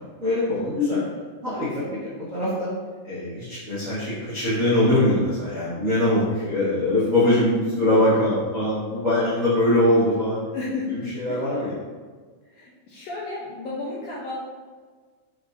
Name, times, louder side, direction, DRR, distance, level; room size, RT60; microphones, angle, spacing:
voice 1, 0.2-1.0 1.4-2.0 2.3-2.7 3.0-10.4 10.9-11.8, left 1 dB, 70° right, -12 dB, 0.7 m, -22 dB
voice 2, 6.9-7.9 10.5-11.0 11.3-11.4 12.5-14.4, left 3 dB, 80° left, -5 dB, 1.5 m, -32 dB
5.2 x 3.5 x 2.5 m, 1.5 s
omnidirectional pair, 3.5 m